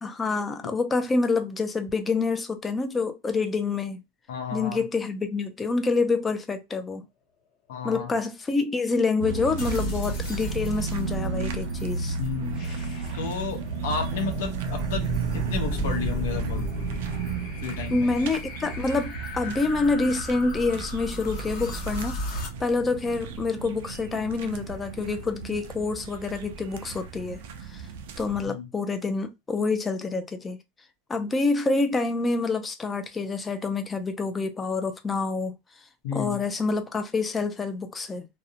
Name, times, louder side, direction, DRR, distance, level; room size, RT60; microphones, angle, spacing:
voice 1, 0.0-4.0 4.5-7.1 7.8-12.2 17.9-27.4 27.7-27.8 28.2-30.6 31.1-35.6 36.1-38.3, left 3 dB, 15° left, 0.3 m, -27 dB
voice 2, 4.3-4.8 7.7-8.1 12.2-12.6 13.1-15.0 15.3-16.7 17.6-18.2 28.4-28.6 36.0-36.4, left 6 dB, 80° left, 0.8 m, -32 dB
sound 1, 9.2-28.4, right 5 dB, 75° right, 0.4 m, -34 dB
sound 2, 9.6-22.5, left 1 dB, 45° left, 0.9 m, -35 dB
2.5 x 2.0 x 2.7 m
supercardioid pair, 165°, 0 cm